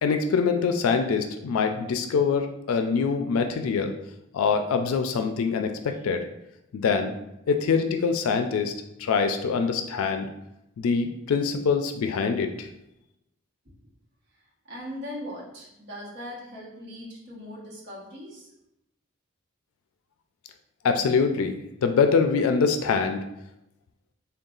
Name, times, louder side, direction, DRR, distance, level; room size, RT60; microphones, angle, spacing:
voice 1, 0.0-3.9 4.3-6.2 6.7-7.1 7.5-8.7 9.0-10.3 10.8-12.7 20.8-21.5 21.8-23.2, left 5 dB, 75° left, 6 dB, 0.3 m, -24 dB
voice 2, 14.7-18.5, left 1 dB, 50° right, -5 dB, 1.0 m, -39 dB
3.8 x 2.3 x 3.7 m, 0.87 s
head